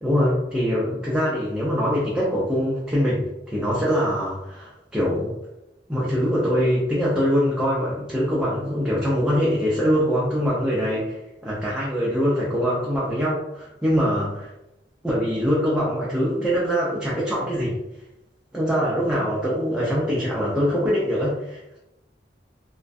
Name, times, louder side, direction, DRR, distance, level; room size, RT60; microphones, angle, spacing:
voice 1, 0.0-5.3 5.9-11.2 11.4-14.5 15.0-17.8 18.5-21.8, equal, 5° right, -7 dB, 0.4 m, -23 dB
2.4 x 2.2 x 2.3 m, 0.92 s
head